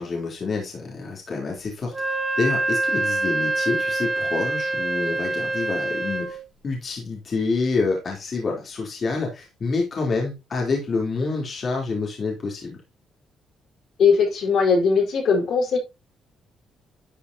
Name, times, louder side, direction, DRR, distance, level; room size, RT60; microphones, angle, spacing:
voice 1, 0.0-1.9 2.4-6.4 6.6-12.8, left 4 dB, 45° left, 3.7 m, -27 dB
Wind instrument woodwind instrument, 1.9-6.4, right 2 dB, 20° right, 2.5 m, -25 dB
voice 2, 14.0-15.8, left 5 dB, 70° left, 4.6 m, -19 dB
12.0 x 7.1 x 2.9 m
cardioid pair, 90°, 0 cm